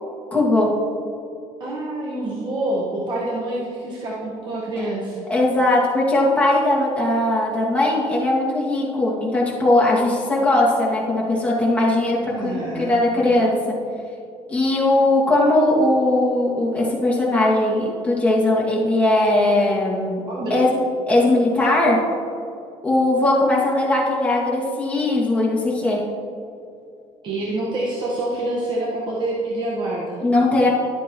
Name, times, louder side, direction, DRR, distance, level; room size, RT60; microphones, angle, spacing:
voice 1, 0.3-0.7 4.8-4.9 5.3-13.7 14.5-20.2 20.5-20.7 21.1-22.0 22.8-26.0 30.2-30.7, left 2 dB, 10° left, -6 dB, 2.3 m, -19 dB
voice 2, 1.6-5.3 12.2-13.2 20.3-20.6 27.2-30.2, right 1 dB, 40° right, -5 dB, 1.4 m, -27 dB
12.5 x 8.1 x 3.1 m, 2.6 s
cardioid pair, 130°, 11 cm